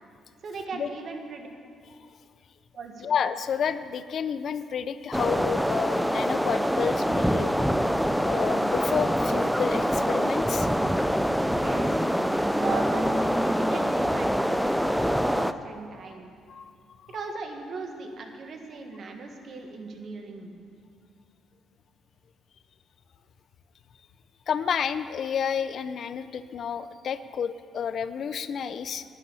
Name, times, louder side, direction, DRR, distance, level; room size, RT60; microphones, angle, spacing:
voice 1, 0.4-1.5 2.7-3.1 11.6-12.0 12.5-16.3 17.1-20.6, right 4 dB, 55° right, 3 dB, 1.6 m, -38 dB
voice 2, 3.0-7.6 8.2-10.7 16.5-16.6 17.0-17.1 24.5-29.0, left 7 dB, 60° left, 13 dB, 0.6 m, -30 dB
sound 1, 5.1-15.5, equal, ahead, 0.4 m, -25 dB
11.0 x 9.0 x 8.4 m, 2.3 s
cardioid pair, 90°, 0 cm